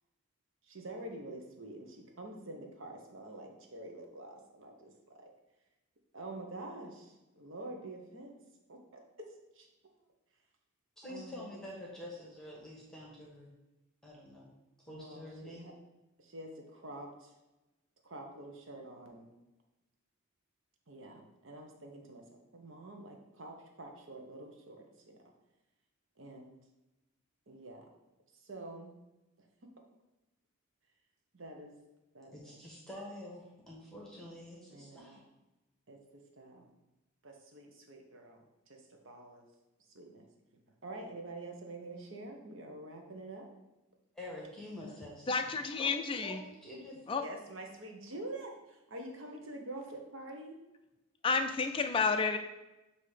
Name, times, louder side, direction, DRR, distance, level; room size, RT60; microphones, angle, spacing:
voice 1, 0.6-5.3 6.1-8.3 8.7-9.3 9.5-9.7 11.1-11.5 14.9-15.7 16.2-17.3 18.0-19.3 20.9-25.2 26.2-26.5 27.5-27.9 28.4-28.9 29.4-29.5 29.8-29.9 31.3-31.8 32.1-32.6 34.7-35.2 35.9-36.7 37.2-39.4 39.9-40.3 40.8-43.5 47.1-50.6, right 2 dB, 60° right, 2 dB, 1.0 m, -47 dB
voice 2, 11.0-13.5 14.0-14.5 14.8-15.7 32.3-35.2 44.1-45.5 45.8-47.0, left 1 dB, ahead, -5 dB, 1.2 m, -47 dB
voice 3, 45.3-46.4 47.1-47.2 51.2-52.4, left 4 dB, 25° left, 7 dB, 0.3 m, -30 dB
7.5 x 2.8 x 4.9 m, 1.0 s
head